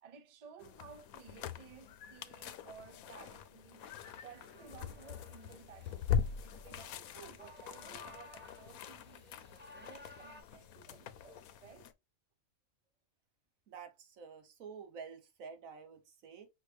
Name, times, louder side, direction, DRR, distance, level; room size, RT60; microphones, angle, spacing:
voice 1, 0.0-3.9 4.2-11.9, right 7 dB, 50° right, 0.4 m, -56 dB
sound 1, 0.6-11.9, left 8 dB, 80° left, 1.0 m, -42 dB
sound 2, 3.8-10.4, left 2 dB, 10° right, 0.8 m, -58 dB
voice 2, 13.7-16.5, right 6 dB, 70° right, 1.4 m, -49 dB
5.8 x 2.7 x 3.3 m
omnidirectional pair, 1.5 m